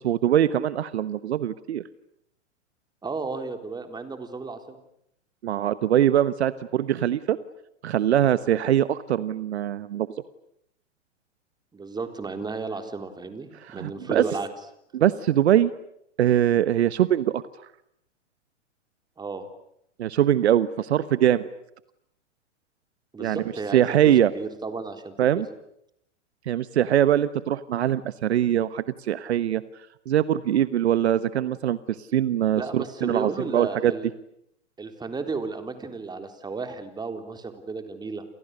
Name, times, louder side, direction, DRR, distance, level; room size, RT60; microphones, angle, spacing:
voice 1, 0.0-1.8 5.4-7.4 7.8-10.1 13.6-14.3 14.9-15.7 16.2-17.4 20.0-21.5 23.2-23.4 23.7-24.3 25.2-25.5 26.5-29.6 30.1-33.9, right 11 dB, 60° right, 15 dB, 1.2 m, -22 dB
voice 2, 3.0-4.8 11.7-14.5 19.2-19.4 23.1-25.4 32.6-34.1 34.8-38.3, right 4 dB, 10° right, 7 dB, 3.7 m, -33 dB
29.5 x 28.0 x 6.7 m, 0.75 s
figure-of-eight pair, 110°, 37 cm